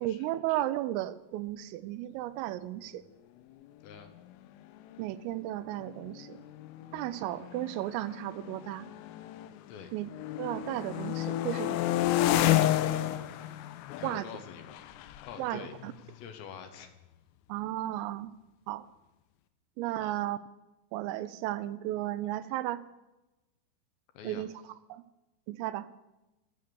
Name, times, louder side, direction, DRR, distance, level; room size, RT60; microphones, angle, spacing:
voice 1, 0.0-3.0 5.0-6.4 6.9-8.9 9.9-10.1 10.4-11.8 14.0-14.3 15.4-15.9 17.5-18.3 18.7-18.9 19.8-20.4 20.9-22.8 24.2-24.5 24.9-25.0 25.5-25.9, right 14 dB, 85° right, 15 dB, 3.3 m, -34 dB
sound 1, 4.3-4.4 4.7-5.0 5.8-9.7 10.0-16.7, left 13 dB, 90° left, 3.4 m, -32 dB
voice 2, 14.0-14.8 15.2-15.7 16.1-16.9 20.0-20.1 24.1-24.4, left 7 dB, 70° left, 7 dB, 3.0 m, -45 dB
23.5 x 8.0 x 6.9 m, 1.0 s
omnidirectional pair, 5.9 m